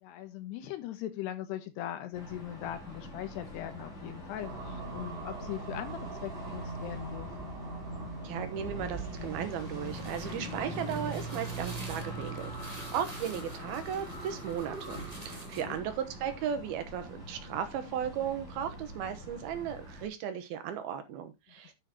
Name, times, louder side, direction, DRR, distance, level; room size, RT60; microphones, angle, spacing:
voice 1, 0.0-7.5 15.3-15.8 21.6-21.7, left 12 dB, 75° left, 10 dB, 2.7 m, -40 dB
sound 1, 2.1-20.1, right 1 dB, 15° left, 4.3 m, -44 dB
sound 2, 4.4-16.4, right 2 dB, 10° right, 3.7 m, -42 dB
voice 2, 8.2-21.7, right 9 dB, 75° right, 9 dB, 2.3 m, -36 dB
sound 3, 9.6-15.8, right 1 dB, 40° right, 0.5 m, -50 dB
10.5 x 9.2 x 2.9 m, 0.21 s
omnidirectional pair, 5.8 m